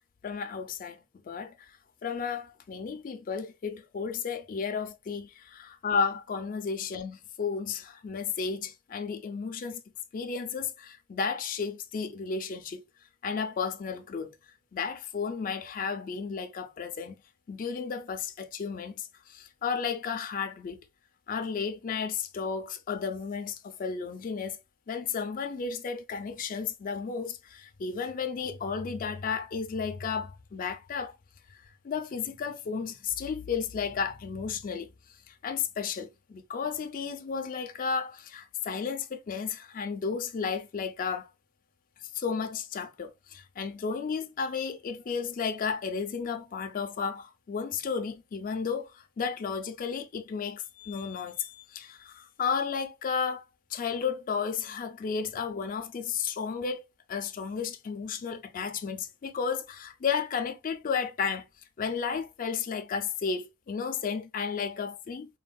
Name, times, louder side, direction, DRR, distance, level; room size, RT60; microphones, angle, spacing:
voice 1, 0.2-1.0 1.3-1.5 2.0-9.8 10.1-12.8 13.2-14.3 14.7-17.2 17.5-20.8 21.3-24.6 24.9-31.2 31.5-34.9 35.3-41.3 42.1-53.4 53.7-61.5 61.8-65.3, left 6 dB, 40° left, 0.4 m, -33 dB
3.4 x 2.1 x 2.2 m
head